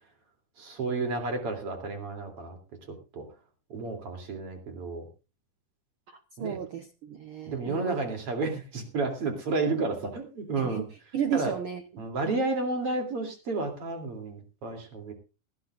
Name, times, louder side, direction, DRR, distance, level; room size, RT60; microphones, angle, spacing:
voice 1, 0.6-2.6 3.1-3.2 3.7-5.1 6.4-6.6 7.5-10.9 11.3-11.5 12.0-15.1, right 3 dB, 45° right, 5 dB, 3.8 m, -31 dB
voice 2, 6.1-8.0 10.6-10.9 11.1-12.3, right 8 dB, 70° right, 7 dB, 1.2 m, -34 dB
19.5 x 14.0 x 2.5 m, 0.31 s
omnidirectional pair, 3.6 m